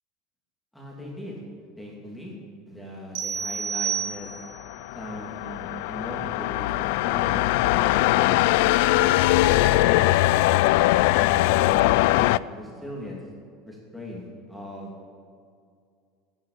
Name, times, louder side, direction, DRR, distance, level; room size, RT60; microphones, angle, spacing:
voice 1, 0.7-1.4 1.8-2.4 2.7-4.4 4.9-9.1 9.5-10.3 10.8-13.2 13.7-15.1, equal, ahead, -3 dB, 2.9 m, -39 dB
sound 1, 3.2-4.7, right 7 dB, 65° right, 1.7 m, -30 dB
sound 2, 4.4-12.4, left 18 dB, 65° left, 0.3 m, -21 dB
15.0 x 11.0 x 8.6 m, 2.3 s
cardioid pair, 175°, 0 cm